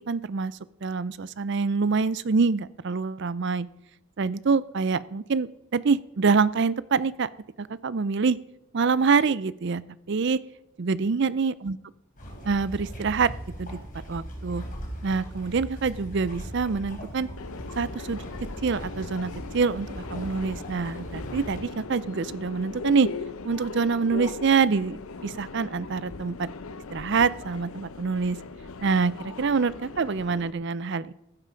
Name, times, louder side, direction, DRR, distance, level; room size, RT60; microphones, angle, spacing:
voice 1, 0.0-3.7 4.2-7.3 7.6-8.4 8.7-9.8 10.1-10.4 10.8-11.8 12.4-13.3 13.6-13.8 14.1-14.6 15.0-17.3 17.8-18.2 18.6-23.1 23.4-26.5 26.9-28.4 28.8-31.1, right 5 dB, 50° right, 18 dB, 0.5 m, -25 dB
sound 1, 12.2-21.6, equal, 35° left, 3.9 m, -39 dB
Subway metro underground, 17.4-30.5, left 4 dB, 75° left, 0.7 m, -39 dB
15.0 x 9.1 x 5.1 m, 0.86 s
head